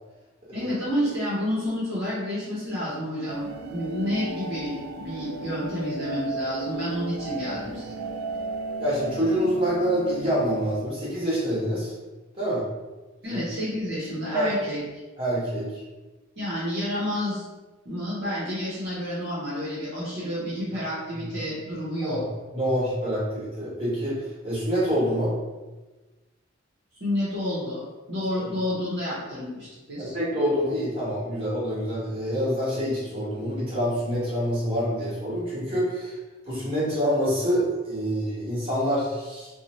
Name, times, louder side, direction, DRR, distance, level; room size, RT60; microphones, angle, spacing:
voice 1, 0.5-8.0 13.2-14.8 16.4-17.4 17.8-22.2 27.0-27.8 28.1-30.1, equal, 55° right, -9 dB, 0.8 m, -30 dB
sound 1, 3.3-10.8, right 2 dB, 90° right, 0.3 m, -35 dB
voice 2, 8.8-11.9 12.3-12.6 13.3-13.4 14.3-14.5 15.2-15.8 21.2-21.3 22.0-22.2 22.5-25.3 30.0-36.2 36.4-39.5, equal, 25° right, -8 dB, 1.1 m, -26 dB
2.7 x 2.1 x 3.0 m, 1.2 s
head